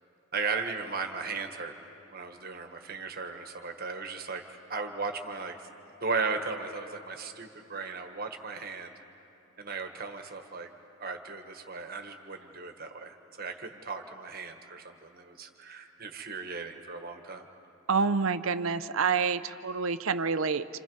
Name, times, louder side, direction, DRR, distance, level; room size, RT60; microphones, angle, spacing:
voice 1, 0.3-1.8 2.1-5.7 6.0-8.9 9.6-10.7 11.0-17.5, right 4 dB, 45° right, 6 dB, 1.5 m, -36 dB
voice 2, 17.9-20.7, right 5 dB, 70° right, 12 dB, 0.7 m, -27 dB
29.0 x 27.5 x 5.5 m, 3.0 s
head